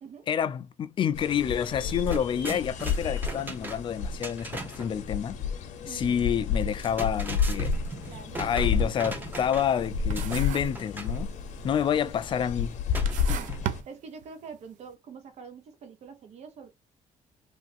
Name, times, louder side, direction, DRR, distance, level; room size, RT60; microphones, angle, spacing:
voice 1, 0.3-5.4 5.8-7.7 8.4-11.3 11.6-12.8, left 8 dB, 40° left, 0.3 m, -28 dB
sound 1, 1.1-13.8, left 6 dB, 70° left, 0.7 m, -31 dB
sound 2, 1.4-1.5 1.8-4.9 6.6-9.8 10.2-11.2 12.9-13.8, right 2 dB, 15° right, 0.6 m, -39 dB
voice 2, 5.8-6.4 8.1-8.4 12.1-12.2 13.2-16.7, right 6 dB, 60° right, 0.8 m, -45 dB
sound 3, 8.2-8.4 8.8-9.8 10.1-10.9 11.1-11.7 12.3-12.4 12.9-14.6, right 10 dB, 75° right, 0.4 m, -36 dB
3.2 x 2.5 x 2.5 m
cardioid pair, 150°, 13 cm